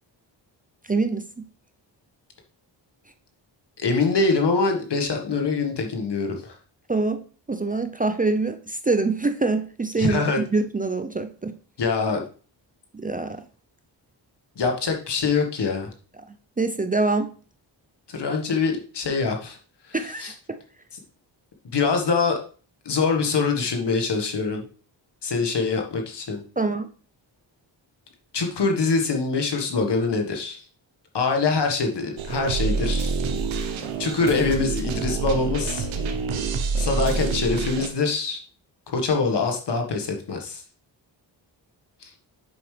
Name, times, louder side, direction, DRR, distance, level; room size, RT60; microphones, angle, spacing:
voice 1, 0.9-1.2 6.9-11.5 12.9-13.4 16.6-17.3 19.9-20.6 26.6-26.9, right 3 dB, 20° right, 8 dB, 0.6 m, -25 dB
voice 2, 3.8-6.6 10.0-10.4 11.8-12.2 14.6-15.9 18.1-19.6 19.9-20.0 20.2-20.3 21.7-22.4 22.9-24.6 25.2-26.4 28.3-30.6 31.1-33.1 34.0-35.9 36.8-38.4 38.9-40.6 42.0-42.1, left 4 dB, 60° left, 3 dB, 1.6 m, -24 dB
sound 1, 32.2-37.9, right 4 dB, 85° right, 0.9 m, -27 dB
7.1 x 5.2 x 3.3 m, 0.39 s
cardioid pair, 55°, 45 cm